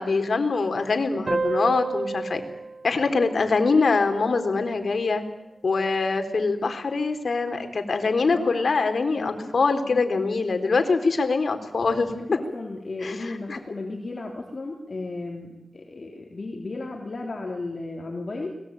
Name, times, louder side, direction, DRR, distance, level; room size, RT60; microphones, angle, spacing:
voice 1, 0.0-2.4 2.8-5.2 5.6-12.1 13.0-13.6, left 4 dB, 60° left, 7 dB, 3.4 m, -24 dB
sound 1, 1.3-4.4, right 3 dB, 45° right, 1.1 m, -31 dB
voice 2, 8.3-8.7 9.1-9.6 9.9-10.1 12.1-18.5, left 2 dB, 45° left, 1 dB, 3.5 m, -34 dB
30.0 x 21.0 x 9.0 m, 0.90 s
wide cardioid pair, 105°, 0 cm